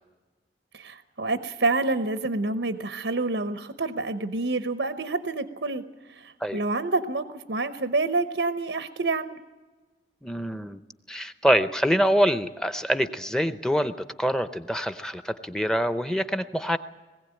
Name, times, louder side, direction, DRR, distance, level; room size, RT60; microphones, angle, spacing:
voice 1, 0.7-5.8 6.1-9.4, right 3 dB, 90° right, 10 dB, 0.9 m, -28 dB
voice 2, 10.2-10.8 11.1-13.9 14.2-16.8, equal, 5° left, 11 dB, 0.6 m, -25 dB
21.0 x 16.0 x 9.0 m, 1.3 s
head